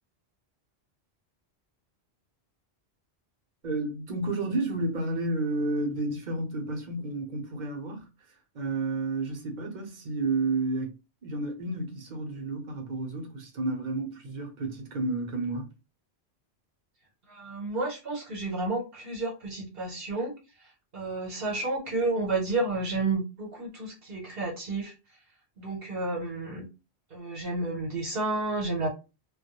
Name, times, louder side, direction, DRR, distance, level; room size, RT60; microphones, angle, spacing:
voice 1, 3.6-10.9 11.2-15.7, right 2 dB, 50° right, 0.8 m, -31 dB
voice 2, 17.3-20.3 20.9-24.9 25.6-26.7 27.1-28.9, right 2 dB, 65° right, 1.1 m, -31 dB
2.2 x 2.1 x 2.8 m
omnidirectional pair, 1.1 m